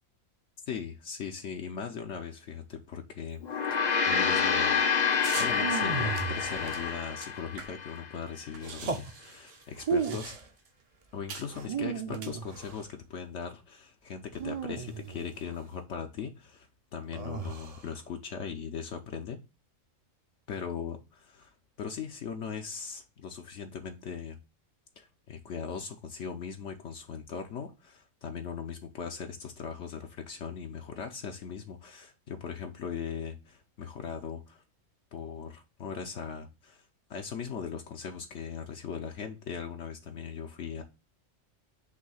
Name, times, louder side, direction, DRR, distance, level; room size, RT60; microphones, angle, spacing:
voice 1, 0.7-4.8 5.1-10.4 11.1-19.4 20.5-24.4 25.0-34.6 35.1-40.8, left 6 dB, 70° left, 1.0 m, -39 dB
Gong, 3.4-8.0, left 6 dB, 45° left, 0.7 m, -28 dB
sound 1, 5.2-5.5 6.1-8.0 8.2-8.3 8.5-10.7 11.3-11.5 12.1-12.8, right 6 dB, 70° right, 1.2 m, -43 dB
sound 2, 5.4-7.4 8.6-9.1 9.8-10.4 11.5-12.8 14.3-15.5 17.1-17.9, right 6 dB, 40° right, 0.6 m, -35 dB
6.2 x 2.7 x 5.5 m
omnidirectional pair, 1.3 m